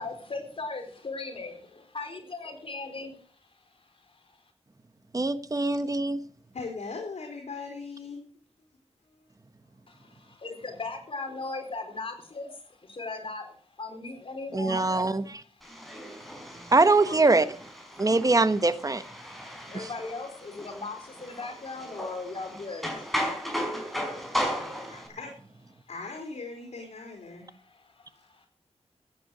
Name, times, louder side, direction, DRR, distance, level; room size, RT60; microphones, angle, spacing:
voice 1, 0.0-3.2 4.1-4.4 9.9-15.8 16.2-16.3 17.0-17.5 19.7-23.0 24.3-24.4 24.7-24.9 27.5-28.5, left 3 dB, 50° left, 4.2 m, -38 dB
voice 2, 5.1-6.2 14.5-15.2 16.7-17.4 18.0-19.0 19.7-19.9, right 3 dB, 30° right, 1.2 m, -22 dB
voice 3, 6.2-8.2 24.9-25.3 25.9-27.5, left 4 dB, 75° left, 3.7 m, -39 dB
sound 1, 15.6-25.1, equal, ahead, 5.1 m, -36 dB
14.5 x 9.7 x 6.2 m
wide cardioid pair, 80°, 11 cm